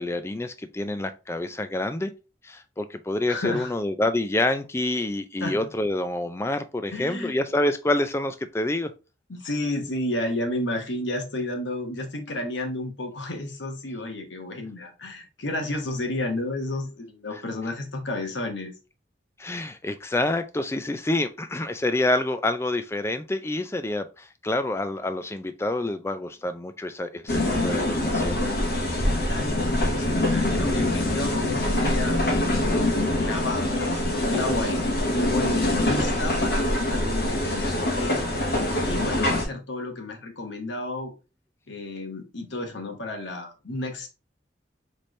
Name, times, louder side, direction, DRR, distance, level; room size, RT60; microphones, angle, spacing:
voice 1, 0.0-2.1 2.4-8.9 17.3-17.4 19.4-28.4, left 1 dB, 15° left, 0.3 m, -27 dB
voice 2, 3.3-3.7 5.4-5.6 6.9-7.5 9.3-18.7 29.2-38.3 38.8-41.1 41.7-44.1, left 1 dB, 75° left, 1.1 m, -32 dB
sound 1, 27.3-39.4, left 1 dB, 55° left, 1.1 m, -24 dB
4.2 x 3.2 x 3.1 m
head